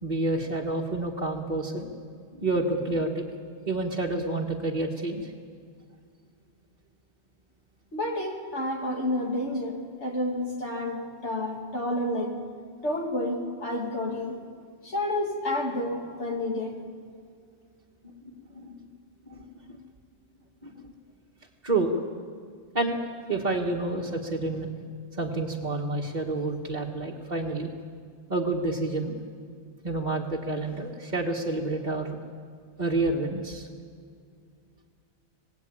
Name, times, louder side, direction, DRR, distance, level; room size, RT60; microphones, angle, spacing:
voice 1, 0.0-1.9 2.3-3.2 3.7-5.3 18.2-18.8 19.3-19.8 20.6-20.9 21.6-21.9 22.7-23.0 23.3-24.7 25.2-27.7 28.3-29.2 29.8-32.2 32.8-33.7, right 2 dB, 35° right, -4 dB, 1.8 m, -29 dB
voice 2, 7.9-12.4 12.8-14.4 14.8-16.8, left 1 dB, 65° left, 1 dB, 3.0 m, -30 dB
26.5 x 18.5 x 8.8 m, 2.2 s
omnidirectional pair, 1.3 m